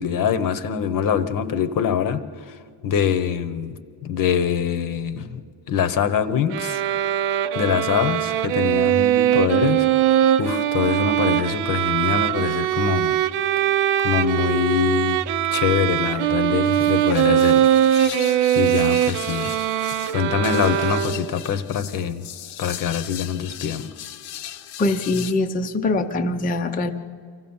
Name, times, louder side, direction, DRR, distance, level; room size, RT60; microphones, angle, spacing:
voice 1, 0.0-2.6 2.8-3.8 4.0-5.4 5.7-6.8 7.6-9.9 10.4-13.1 14.0-15.2 15.5-17.6 18.6-19.5 20.1-22.2 22.6-24.1, left 8 dB, 40° left, 13 dB, 0.8 m, -24 dB
sound 1, 6.5-21.5, right 11 dB, 90° right, 0.8 m, -21 dB
sound 2, 16.6-25.3, left 11 dB, 85° left, 1.0 m, -38 dB
voice 2, 24.8-26.9, left 2 dB, 20° left, 6 dB, 0.5 m, -23 dB
24.0 x 15.5 x 7.1 m, 2.2 s
cardioid pair, 165°, 49 cm